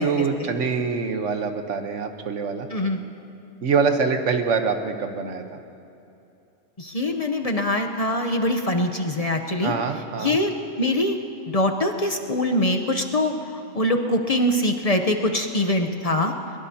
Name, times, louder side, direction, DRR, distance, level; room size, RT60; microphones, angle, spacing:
voice 1, 0.0-2.7 3.6-5.4 9.6-10.4, right 5 dB, 90° right, 6 dB, 1.4 m, -24 dB
voice 2, 2.7-3.0 6.8-9.7 10.2-11.2 11.5-13.3 13.7-16.3, left 1 dB, 35° left, 5 dB, 0.8 m, -23 dB
22.0 x 20.5 x 2.8 m, 2.7 s
omnidirectional pair, 1.2 m